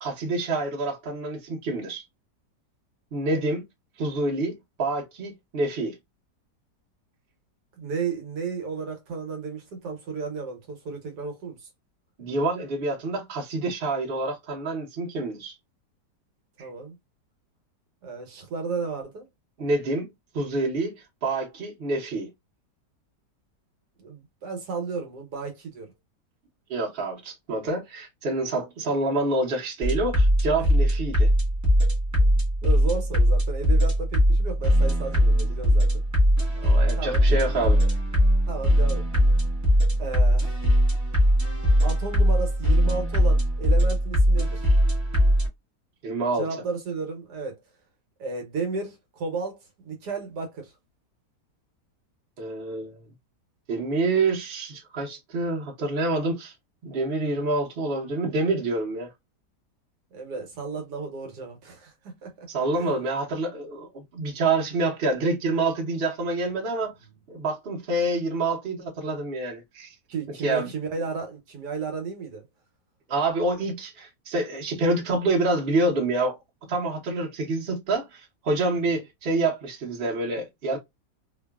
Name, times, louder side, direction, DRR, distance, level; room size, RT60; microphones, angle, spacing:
voice 1, 0.0-2.0 3.1-3.6 4.0-6.0 12.2-15.5 19.6-20.1 20.3-22.3 26.7-31.3 36.6-37.8 46.0-46.4 52.4-53.0 53.7-56.5 56.8-59.1 62.5-66.9 67.3-69.9 70.4-70.7 73.1-76.4 76.7-80.8, right 2 dB, 40° right, 1.0 m, -27 dB
voice 2, 7.8-11.7 16.6-17.0 18.0-19.3 24.0-25.9 29.9-30.0 32.1-35.9 37.0-37.6 38.5-39.1 40.0-40.7 41.8-44.7 46.4-47.6 48.2-50.7 60.1-62.5 62.8-62.9 70.1-72.4 78.8-79.0, right 4 dB, 75° right, 1.4 m, -33 dB
sound 1, 29.8-45.5, equal, 15° right, 0.8 m, -21 dB
3.0 x 2.3 x 2.3 m
omnidirectional pair, 1.8 m